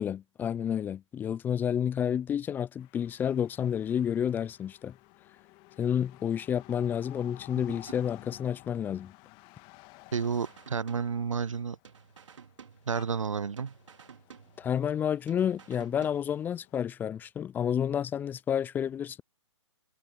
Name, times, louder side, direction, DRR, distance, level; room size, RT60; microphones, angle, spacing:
voice 1, 0.0-4.9 5.8-9.1 14.6-19.2, left 9 dB, 10° left, 0.5 m, -30 dB
sound 1, 2.8-16.8, left 25 dB, 30° left, 1.8 m, -55 dB
sound 2, 10.1-11.6 11.8-13.3 13.6-15.0 15.3-16.6, right 6 dB, 70° right, 3.2 m, -54 dB
voice 2, 10.1-11.8 12.9-13.7, right 6 dB, 85° right, 0.6 m, -31 dB
hypercardioid pair, 130°, 16 cm